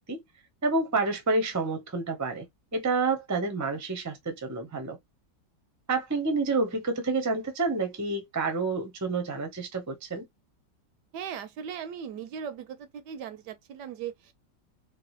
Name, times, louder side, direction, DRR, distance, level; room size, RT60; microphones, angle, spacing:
voice 1, 0.6-2.4 2.7-5.0 5.9-10.2, right 3 dB, 20° right, 0.5 m, -29 dB
voice 2, 11.1-14.3, right 8 dB, 75° right, 1.1 m, -38 dB
3.7 x 2.2 x 3.1 m
omnidirectional pair, 2.0 m